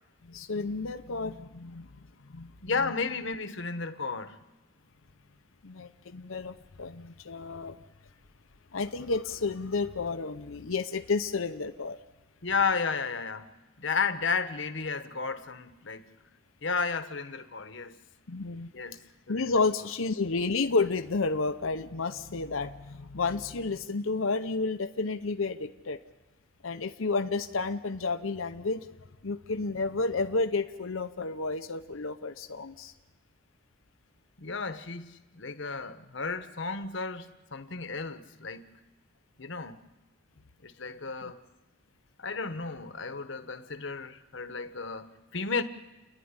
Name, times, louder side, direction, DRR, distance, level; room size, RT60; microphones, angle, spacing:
voice 1, 0.2-2.9 5.6-7.8 8.7-12.0 18.3-18.7 19.3-26.0 26.6-28.9 29.2-32.9 41.2-41.3, left 3 dB, 85° left, 0.8 m, -31 dB
voice 2, 2.6-4.4 12.4-13.5 13.8-16.0 16.6-18.0 18.7-19.5 34.4-38.7 39.4-39.8 40.6-41.4 42.2-45.6, left 5 dB, 70° left, 1.2 m, -33 dB
29.5 x 11.0 x 9.8 m
head